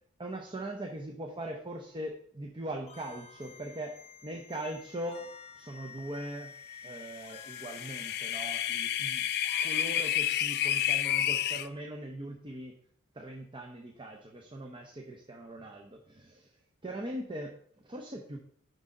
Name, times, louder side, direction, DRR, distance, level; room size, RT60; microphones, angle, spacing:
voice 1, 0.2-4.0 4.2-5.3 5.6-6.5 6.8-9.3 9.6-12.7 13.1-16.5 16.8-18.4, right 1 dB, 20° right, 2 dB, 0.7 m, -40 dB
sound 1, 2.9-11.6, left 6 dB, 30° left, 0.8 m, -50 dB
sound 2, 7.4-11.7, left 10 dB, 50° left, 0.4 m, -30 dB
6.1 x 5.3 x 5.0 m, 0.62 s
head